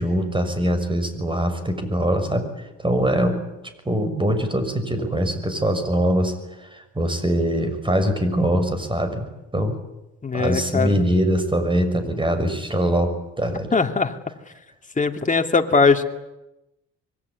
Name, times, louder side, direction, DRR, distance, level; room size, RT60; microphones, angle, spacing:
voice 1, 0.0-3.4 3.8-9.7 10.3-13.7, equal, 15° right, 9 dB, 6.2 m, -23 dB
voice 2, 10.2-11.0 13.7-14.2 15.0-16.0, left 4 dB, 25° left, 5 dB, 2.9 m, -20 dB
25.0 x 23.5 x 9.8 m, 0.93 s
cardioid pair, 90°, 30 cm